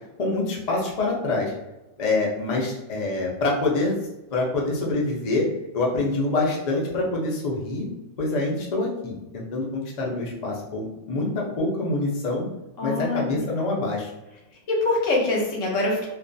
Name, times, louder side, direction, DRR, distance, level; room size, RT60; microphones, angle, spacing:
voice 1, 0.2-1.5 2.0-4.0 4.3-5.5 5.7-7.9 8.2-12.5 12.8-14.1, left 2 dB, 50° left, -3 dB, 0.5 m, -26 dB
voice 2, 12.8-13.4 14.7-16.1, left 2 dB, 70° left, -1 dB, 1.0 m, -24 dB
2.4 x 2.2 x 2.5 m, 0.99 s
omnidirectional pair, 1.4 m